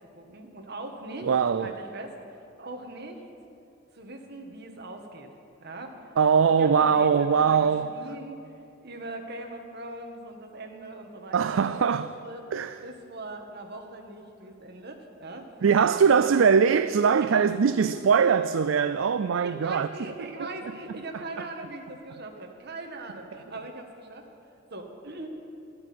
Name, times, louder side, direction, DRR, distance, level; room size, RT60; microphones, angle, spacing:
voice 1, 0.1-1.3 1.6-2.2 2.6-3.2 3.9-5.3 5.6-6.1 6.6-8.5 8.8-12.5 12.8-15.5 16.1-16.4 17.2-17.3 17.6-18.0 19.4-24.3 24.7-25.3, right 2 dB, 55° right, 1.7 m, -40 dB
voice 2, 1.2-1.7 6.2-7.9 11.3-12.1 12.5-12.8 15.6-19.9 20.4-20.5, right 6 dB, 80° right, 0.4 m, -21 dB
14.0 x 8.7 x 9.4 m
head